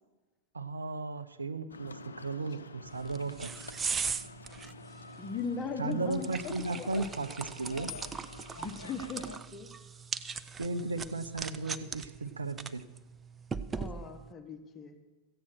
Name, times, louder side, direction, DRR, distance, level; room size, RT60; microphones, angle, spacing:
voice 1, 0.5-3.6 5.8-7.9 10.6-12.9, right 3 dB, 90° right, 9 dB, 0.6 m, -35 dB
sound 1, 1.7-9.4, left 4 dB, 85° left, 0.6 m, -49 dB
sound 2, 2.9-14.3, right 5 dB, 20° right, 0.6 m, -40 dB
voice 2, 5.2-7.0 8.6-9.7 13.8-14.9, left 5 dB, 25° left, 5 dB, 1.4 m, -39 dB
sound 3, 7.9-9.7, left 16 dB, 45° left, 1.2 m, -51 dB
14.5 x 8.8 x 6.2 m, 1.3 s
hypercardioid pair, 95°, 0 cm